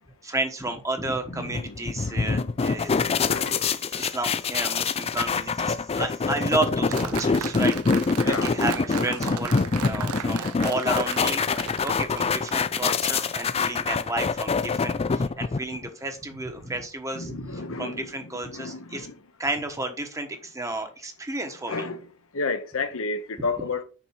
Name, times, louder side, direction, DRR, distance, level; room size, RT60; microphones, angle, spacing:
voice 1, 0.2-7.8 8.2-11.4 11.8-19.1 19.4-21.9 23.6-23.7, right 2 dB, 15° right, 1.1 m, -32 dB
voice 2, 1.4-1.7 2.1-2.5 3.3-3.6 8.2-8.5 17.2-18.1 18.5-19.1 21.7-22.0 22.3-23.8, left 4 dB, 65° left, 1.0 m, -31 dB
sound 1, 1.5-15.9, left 4 dB, 25° left, 0.4 m, -25 dB
Applause, 6.9-12.8, right 8 dB, 75° right, 0.6 m, -35 dB
7.0 x 5.3 x 4.5 m
head